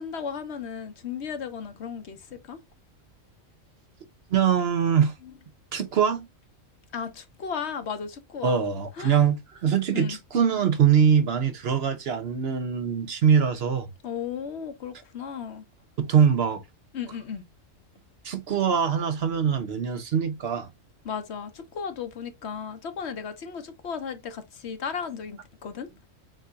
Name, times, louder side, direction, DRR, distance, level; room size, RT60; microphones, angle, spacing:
voice 1, 0.0-2.6 5.2-5.3 6.9-8.6 9.0-9.2 9.9-10.2 14.0-15.6 16.9-17.4 21.0-25.9, left 6 dB, 60° left, 1.0 m, -35 dB
voice 2, 4.3-5.1 5.7-6.3 8.4-13.9 16.0-16.6 18.2-20.7, right 7 dB, 60° right, 0.8 m, -23 dB
7.3 x 2.7 x 2.3 m
omnidirectional pair, 1.3 m